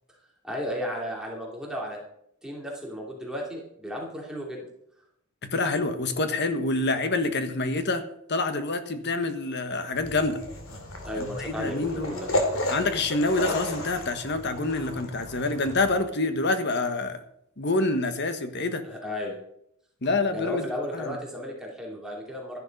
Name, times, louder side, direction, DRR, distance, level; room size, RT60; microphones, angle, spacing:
voice 1, 0.4-2.0 2.4-4.7 11.0-12.3 18.8-19.4 20.3-22.6, equal, 5° right, -2 dB, 2.7 m, -34 dB
voice 2, 5.4-10.4 11.1-12.2 12.7-17.2 17.6-18.8 20.0-20.6 20.9-21.2, left 2 dB, 55° left, 9 dB, 1.3 m, -27 dB
sound 1, 9.9-16.0, left 1 dB, 85° left, 2.6 m, -33 dB
13.0 x 10.5 x 5.3 m, 0.73 s
head